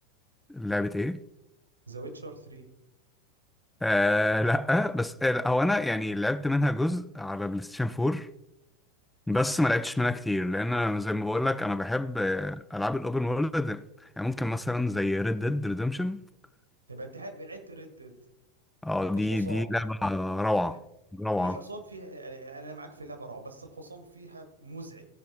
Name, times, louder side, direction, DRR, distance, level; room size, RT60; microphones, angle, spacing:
voice 1, 0.5-1.2 3.8-8.3 9.3-16.2 18.8-20.8 21.1-21.6, left 1 dB, 5° left, 0.4 m, -27 dB
voice 2, 1.9-2.7 16.9-18.1 19.1-19.7 20.6-20.8 21.4-25.1, right 2 dB, 85° right, 1.6 m, -43 dB
15.5 x 10.5 x 2.3 m
figure-of-eight pair, 85°, 0 cm